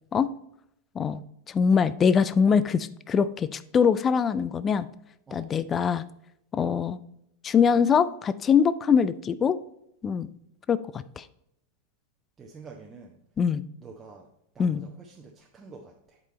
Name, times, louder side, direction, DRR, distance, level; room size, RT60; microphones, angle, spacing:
voice 1, 1.5-4.9 5.3-6.0 6.5-7.0 7.4-9.6 10.0-10.3 10.7-11.2 13.4-13.6 14.6-14.8, left 6 dB, 25° left, 15 dB, 0.4 m, -23 dB
voice 2, 12.4-13.2 13.8-14.3 14.5-16.2, right 4 dB, 20° right, -1 dB, 0.9 m, -47 dB
8.4 x 5.1 x 4.3 m, 0.77 s
figure-of-eight pair, 90°, 0 cm